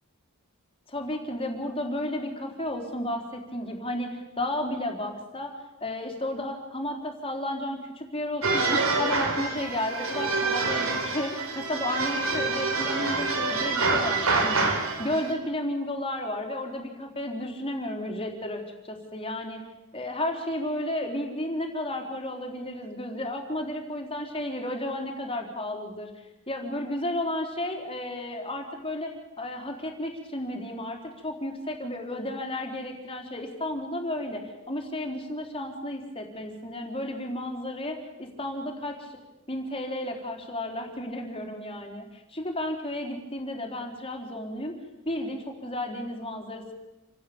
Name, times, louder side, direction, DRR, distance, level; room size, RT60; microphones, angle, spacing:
voice 1, 0.9-5.5 5.8-14.7 15.0-19.6 19.9-26.1 26.5-29.1 29.4-39.2 39.5-44.7 45.0-46.7, left 1 dB, 25° left, 3 dB, 4.2 m, -33 dB
sound 1, 8.4-15.3, right 3 dB, 70° right, 4.4 m, -27 dB
28.5 x 16.5 x 8.8 m, 1.0 s
head